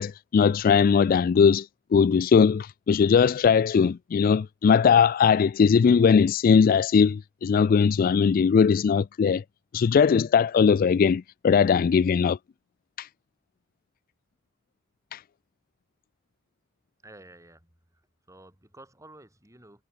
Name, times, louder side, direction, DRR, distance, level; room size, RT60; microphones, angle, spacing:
voice 1, 0.0-1.7 1.9-9.4 9.7-12.4 13.0-13.1 15.1-15.2, left 6 dB, 45° left, 0.3 m, -20 dB
voice 2, 17.0-19.8, right 1 dB, 15° right, 8.0 m, -52 dB
head